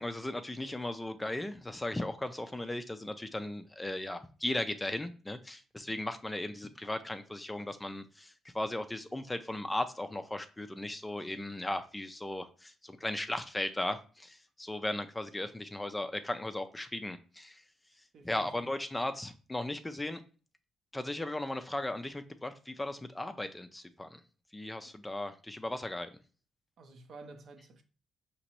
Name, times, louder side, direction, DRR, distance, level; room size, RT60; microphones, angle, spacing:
voice 1, 0.0-17.6 18.2-20.2 20.9-24.2 24.5-26.1, left 1 dB, 10° left, 0.4 m, -37 dB
voice 2, 18.1-18.7 24.9-25.0 26.8-27.8, right 2 dB, 60° right, 0.8 m, -51 dB
5.1 x 2.9 x 2.9 m
cardioid pair, 90°, 0 cm